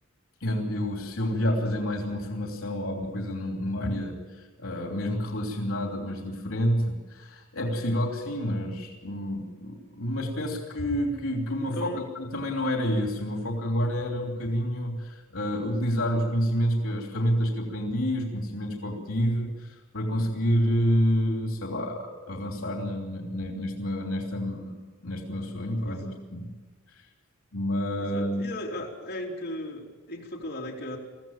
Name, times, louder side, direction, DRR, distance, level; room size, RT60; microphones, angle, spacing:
voice 1, 0.4-24.7 25.0-26.5 26.9-27.1 27.5-28.4, equal, 80° left, 1 dB, 3.1 m, -29 dB
voice 2, 11.6-12.0 25.9-26.2 28.0-31.0, left 1 dB, 50° left, -2 dB, 3.5 m, -37 dB
23.0 x 15.5 x 7.4 m, 1.3 s
head